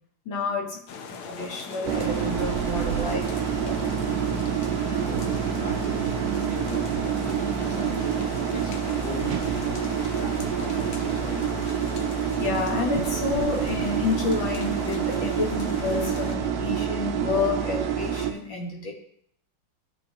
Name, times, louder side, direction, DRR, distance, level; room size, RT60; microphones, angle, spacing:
voice 1, 0.3-0.8 1.1-3.2 3.6-4.0 12.4-18.9, left 4 dB, 60° left, -1 dB, 2.1 m, -29 dB
sound 1, 0.9-16.4, left 6 dB, 80° left, 1.7 m, -40 dB
sound 2, 1.8-18.3, right 8 dB, 80° right, 0.8 m, -27 dB
voice 2, 4.8-8.2 8.5-11.6, left 1 dB, 35° left, -2 dB, 1.7 m, -39 dB
13.0 x 5.5 x 2.9 m, 0.69 s
omnidirectional pair, 2.4 m